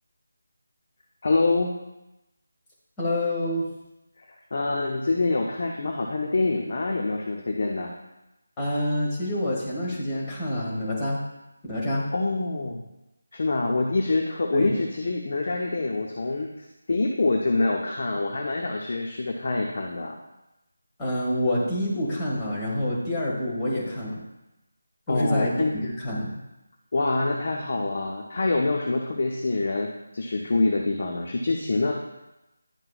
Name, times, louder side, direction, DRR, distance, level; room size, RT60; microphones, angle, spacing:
voice 1, 1.2-1.7 4.2-7.9 12.1-12.8 13.3-20.2 25.1-25.9 26.9-29.9 30.1-31.9, left 3 dB, 45° left, 1 dB, 0.7 m, -26 dB
voice 2, 3.0-3.6 8.6-11.2 11.7-12.1 14.5-14.7 21.0-24.2 25.1-25.5 25.8-26.3, left 1 dB, 15° left, -6 dB, 1.8 m, -27 dB
10.5 x 5.7 x 2.4 m, 0.96 s
figure-of-eight pair, 160°, 0 cm